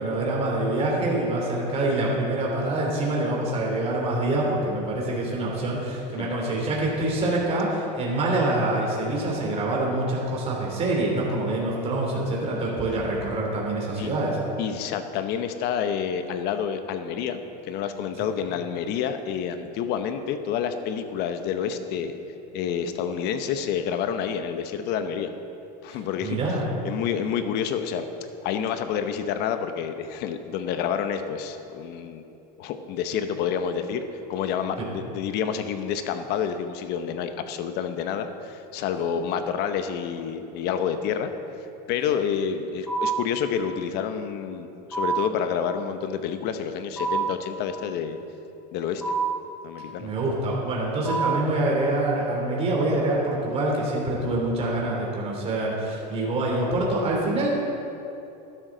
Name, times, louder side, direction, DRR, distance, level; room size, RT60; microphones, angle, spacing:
voice 1, 0.0-14.4 25.9-26.6 34.8-34.9 50.0-57.5, right 2 dB, 30° right, -3 dB, 3.1 m, -25 dB
voice 2, 14.6-17.4 17.7-22.1 22.5-25.3 25.8-26.4 26.8-28.1 28.4-32.2 32.6-34.0 34.3-41.3 41.9-48.2 48.7-49.1 49.6-50.1, left 7 dB, 50° left, 8 dB, 0.9 m, -28 dB
sound 1, 42.9-43.4 44.9-45.4 47.0-47.4 49.0-49.5 51.1-51.5, right 5 dB, ahead, 2.4 m, -26 dB
12.5 x 11.0 x 3.9 m, 2.8 s
supercardioid pair, 130°, 21 cm